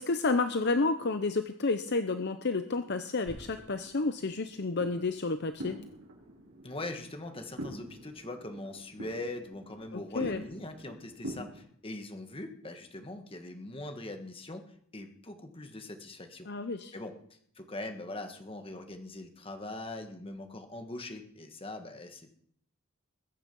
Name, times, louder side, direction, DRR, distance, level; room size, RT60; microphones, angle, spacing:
voice 1, 0.0-5.8 9.9-10.4 16.5-16.9, left 3 dB, 50° left, 9 dB, 0.7 m, -30 dB
sound 1, 3.2-11.6, right 1 dB, 85° right, 5.1 m, -46 dB
voice 2, 6.6-16.5 16.9-17.1 17.5-22.3, left 2 dB, 25° left, 6 dB, 1.6 m, -42 dB
21.0 x 9.0 x 5.5 m, 0.66 s
head